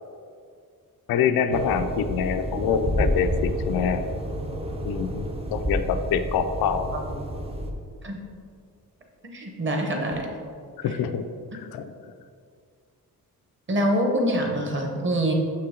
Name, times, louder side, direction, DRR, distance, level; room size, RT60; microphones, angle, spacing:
voice 1, 1.1-4.0 4.8-6.9 10.8-11.3 11.5-11.9, left 7 dB, 75° left, 9 dB, 0.5 m, -25 dB
sound 1, 1.5-7.7, equal, 15° right, 0.5 m, -29 dB
voice 2, 8.0-8.4 9.2-10.3 13.7-15.3, right 1 dB, 30° right, 2 dB, 1.0 m, -25 dB
6.9 x 5.7 x 3.7 m, 2.2 s
wide cardioid pair, 170°, 37 cm